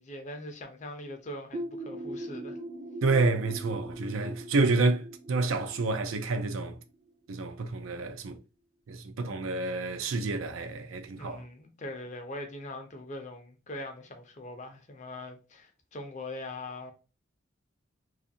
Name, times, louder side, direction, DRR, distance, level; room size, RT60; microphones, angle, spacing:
voice 1, 0.0-2.6 11.2-16.9, left 1 dB, 35° left, 0.5 m, -41 dB
sound 1, 1.5-7.1, right 1 dB, 35° right, 0.4 m, -41 dB
voice 2, 3.0-6.8 7.3-8.4 8.9-11.4, right 3 dB, 90° right, 0.5 m, -29 dB
2.5 x 2.4 x 2.6 m
head